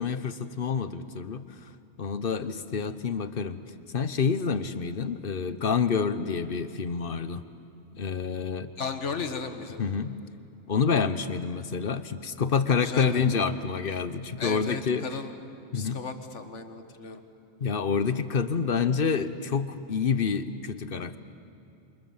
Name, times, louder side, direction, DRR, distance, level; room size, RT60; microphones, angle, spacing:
voice 1, 0.0-1.7 2.0-3.6 3.9-7.4 7.9-8.7 9.8-10.2 10.7-15.1 15.7-16.0 17.6-21.2, left 6 dB, 55° left, 12 dB, 1.1 m, -28 dB
voice 2, 8.8-9.8 12.8-13.3 14.4-15.3 15.7-17.2, left 5 dB, 80° left, 8 dB, 1.8 m, -35 dB
28.5 x 26.0 x 7.3 m, 2.8 s
omnidirectional pair, 1.2 m